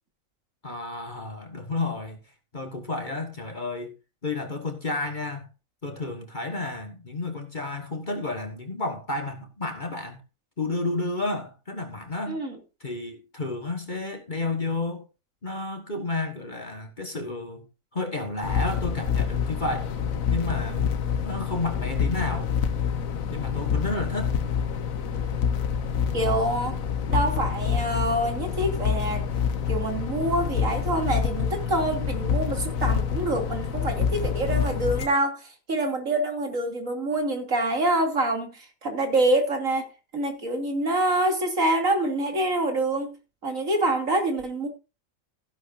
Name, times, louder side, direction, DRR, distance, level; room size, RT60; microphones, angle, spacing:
voice 1, 0.6-2.2 2.5-3.9 4.2-5.5 5.8-10.2 10.6-12.4 12.8-15.1 15.4-17.6 17.9-19.9 20.3-20.9 21.2-22.5 23.3-24.4, left 2 dB, 35° left, 1.7 m, -31 dB
voice 2, 12.3-12.6 26.1-26.8 27.1-29.3 29.7-39.9 40.1-43.2 43.4-44.7, right 1 dB, 70° right, 3.3 m, -26 dB
sound 1, 18.4-35.1, left 7 dB, 80° left, 1.5 m, -27 dB
15.0 x 11.0 x 2.7 m
omnidirectional pair, 1.4 m